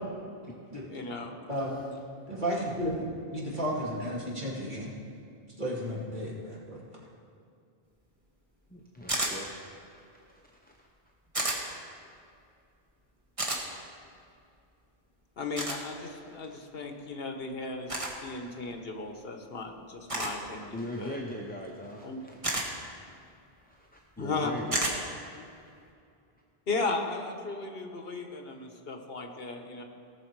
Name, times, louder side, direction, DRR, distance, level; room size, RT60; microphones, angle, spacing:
voice 1, 0.9-1.9 15.4-21.2 22.0-22.2 24.2-24.5 26.7-29.8, left 3 dB, 70° left, 4 dB, 1.3 m, -36 dB
voice 2, 2.3-4.9 5.6-6.8, equal, 50° right, -6 dB, 2.6 m, -33 dB
voice 3, 8.7-9.5 10.6-10.7 16.5-16.6 20.7-22.4 23.6-25.3, left 1 dB, 10° left, -1 dB, 0.6 m, -40 dB
sound 1, 9.1-9.3 11.3-11.6 13.4-13.6 15.6-15.8 17.9-18.1 20.1-20.4 22.4-22.7 24.7-25.0, right 1 dB, 35° right, 1.5 m, -30 dB
18.0 x 6.5 x 4.7 m, 2.5 s
omnidirectional pair, 1.0 m